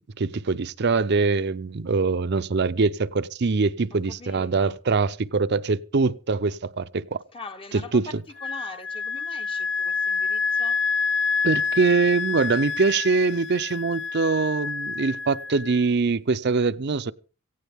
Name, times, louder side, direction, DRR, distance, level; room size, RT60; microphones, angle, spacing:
voice 1, 0.2-7.2 7.9-8.0 11.4-17.1, right 4 dB, 55° right, 0.6 m, -23 dB
voice 2, 3.9-4.8 7.3-10.8, left 3 dB, 25° left, 0.9 m, -42 dB
Wind instrument woodwind instrument, 8.4-15.8, left 5 dB, 60° left, 0.9 m, -27 dB
17.5 x 16.0 x 3.5 m
head